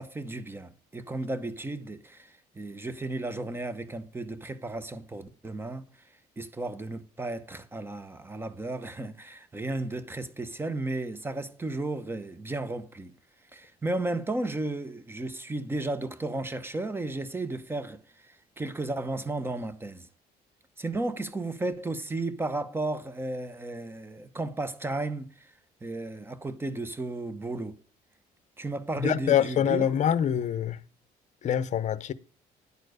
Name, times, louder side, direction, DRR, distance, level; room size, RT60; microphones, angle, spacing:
voice 1, 0.0-5.8 6.4-13.1 13.5-20.1 20.8-25.3 25.8-27.8 28.6-29.9, right 2 dB, 15° right, 0.9 m, -34 dB
voice 2, 29.0-30.8 31.4-32.1, left 9 dB, 45° left, 0.7 m, -25 dB
10.5 x 4.5 x 6.4 m
cardioid pair, 110°, 17 cm